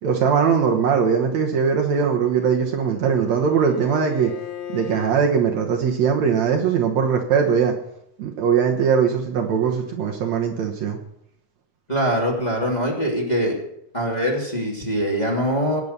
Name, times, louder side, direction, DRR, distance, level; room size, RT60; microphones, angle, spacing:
voice 1, 0.0-4.3 4.7-7.8 8.2-11.0, right 6 dB, 65° right, 2 dB, 2.3 m, -20 dB
Bowed string instrument, 2.0-5.2, left 10 dB, 90° left, 3.9 m, -37 dB
voice 2, 11.9-13.5 13.9-15.8, equal, 15° left, -1 dB, 2.9 m, -23 dB
18.0 x 9.6 x 6.7 m, 0.76 s
omnidirectional pair, 3.7 m